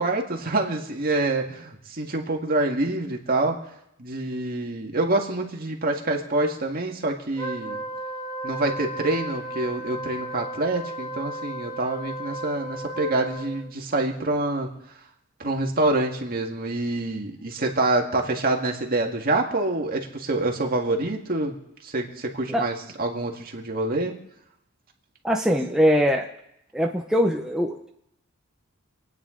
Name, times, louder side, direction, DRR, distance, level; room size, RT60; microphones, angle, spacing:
voice 1, 0.0-3.6 4.0-7.8 8.4-14.7 15.4-21.6 21.8-24.1, right 2 dB, 45° right, 1 dB, 1.9 m, -26 dB
Wind instrument woodwind instrument, 7.3-13.7, right 1 dB, 20° left, 2.3 m, -34 dB
voice 2, 25.2-26.3 26.7-27.9, equal, 5° right, 0 dB, 0.7 m, -22 dB
27.0 x 9.6 x 3.8 m, 0.80 s
head